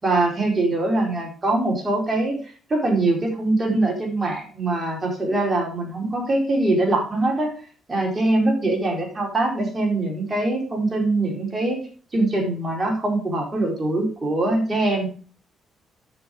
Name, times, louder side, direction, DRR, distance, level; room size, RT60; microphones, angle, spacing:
voice 1, 0.0-2.4 2.7-7.5 7.9-11.8 12.1-15.1, right 2 dB, 25° right, 0 dB, 4.6 m, -23 dB
10.5 x 6.5 x 5.1 m, 0.41 s
cardioid pair, 90°, 0 cm